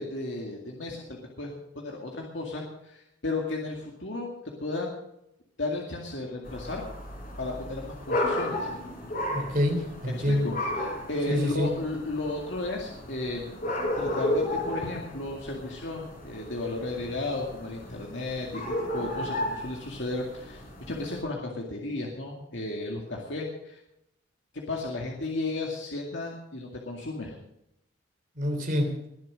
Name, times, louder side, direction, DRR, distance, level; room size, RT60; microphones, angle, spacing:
voice 1, 0.0-4.3 4.6-5.0 5.6-6.9 7.4-8.7 10.3-13.6 14.0-18.6 18.9-20.6 20.9-23.8 24.5-27.4, left 2 dB, 70° left, -1 dB, 2.3 m, -34 dB
sound 1, 6.4-21.2, left 1 dB, 50° left, 3.9 m, -34 dB
voice 2, 9.3-10.5 11.3-11.7 28.3-28.9, left 1 dB, 45° right, 4 dB, 3.1 m, -26 dB
21.5 x 7.6 x 6.4 m, 0.82 s
head